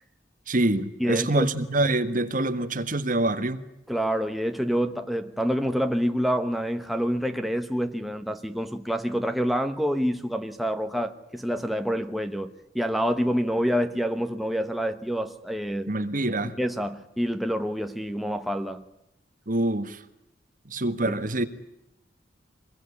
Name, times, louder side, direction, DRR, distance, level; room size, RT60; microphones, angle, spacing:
voice 1, 0.5-3.6 15.9-16.5 19.5-20.0 20.6-21.5, right 2 dB, 45° right, 1.7 m, -25 dB
voice 2, 1.0-1.5 3.9-15.9 16.6-18.8 21.1-21.2, equal, ahead, 1.1 m, -27 dB
25.0 x 21.5 x 9.9 m
head